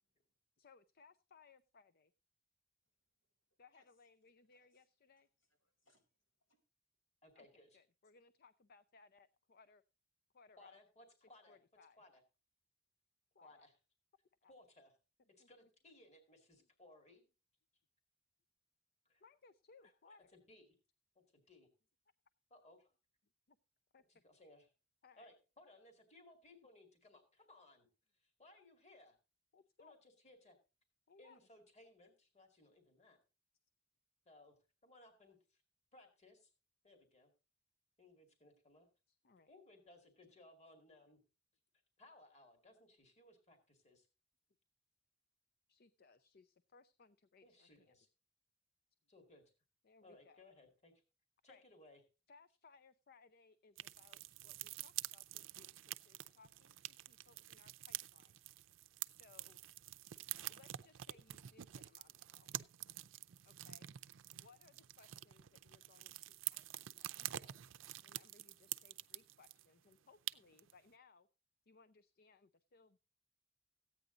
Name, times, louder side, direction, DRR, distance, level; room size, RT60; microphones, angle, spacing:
voice 1, 0.6-2.1 3.6-5.3 7.3-9.8 10.3-10.8 11.2-12.0 13.3-13.7 14.4-14.5 15.4-15.5 19.2-20.3 23.5-23.6 23.9-24.0 25.0-25.4 26.5-26.7 29.5-30.0 31.1-31.4 39.1-39.5 45.7-47.9 49.8-50.4 51.5-51.6 52.3-58.3 59.1-59.6 60.5-62.6 63.4-63.9 64.3-67.5 68.0-71.3 71.7-73.0, left 4 dB, 50° left, 13 dB, 0.5 m, -66 dB
voice 2, 4.5-4.8 5.2-6.6, left 2 dB, 75° left, 2 dB, 4.9 m, -79 dB
voice 3, 7.2-7.8 10.6-11.6 12.0-12.2 13.4-13.7 14.5-14.9 15.3-17.2 19.1-19.2 19.8-20.8 21.2-21.7 22.5-22.9 24.1-24.7 25.2-27.9 28.1-29.2 29.8-30.6 31.2-33.2 34.3-34.6 34.8-35.6 35.9-36.5 36.8-37.3 38.0-38.9 39.5-41.2 42.0-44.1 47.4-48.1 49.1-49.4 50.0-50.9 51.4-52.0, left 2 dB, 35° left, 4 dB, 2.2 m, -63 dB
sound 1, 53.8-69.6 69.9-70.0 70.3-70.7, right 14 dB, 85° right, 0.5 m, -48 dB
15.0 x 9.1 x 3.9 m, 0.31 s
head